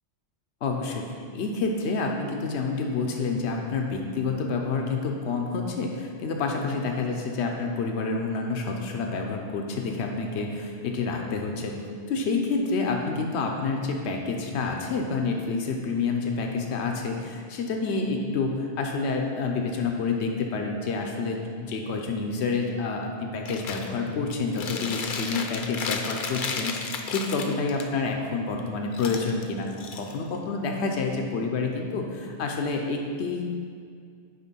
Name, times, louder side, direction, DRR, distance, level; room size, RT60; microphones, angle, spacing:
voice 1, 0.6-29.7 30.0-33.4, left 4 dB, 85° left, 2 dB, 1.0 m, -28 dB
Chewing mastication, 23.5-23.9 24.3-27.8 28.9-30.4, left 5 dB, 55° left, 0.7 m, -33 dB
6.5 x 5.1 x 5.4 m, 2.2 s
omnidirectional pair, 1.1 m